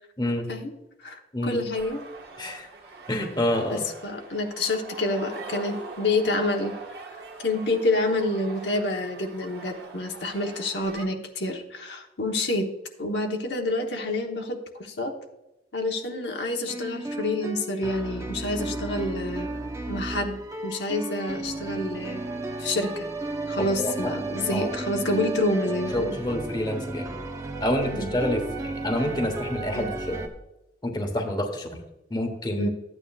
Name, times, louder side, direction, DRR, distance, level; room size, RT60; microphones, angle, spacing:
voice 1, 0.2-0.5 1.3-1.6 2.4-2.7 3.1-3.9 23.8-24.2 24.5-24.7 25.9-27.1 27.6-30.2 30.8-31.7 32.1-32.7, left 1 dB, 25° left, 4 dB, 1.2 m, -28 dB
voice 2, 1.0-2.0 3.7-6.7 7.4-12.7 13.0-15.1 15.7-19.5 19.9-20.4 20.6-22.2 22.6-23.1 23.5-26.2 27.9-28.1 29.8-29.9 32.6-32.7, left 2 dB, 80° left, 2 dB, 1.1 m, -28 dB
sound 1, 1.7-11.0, right 3 dB, 60° right, 1.5 m, -42 dB
sound 2, 16.7-30.3, right 2 dB, 15° right, 0.8 m, -33 dB
13.5 x 9.0 x 2.4 m, 0.93 s
head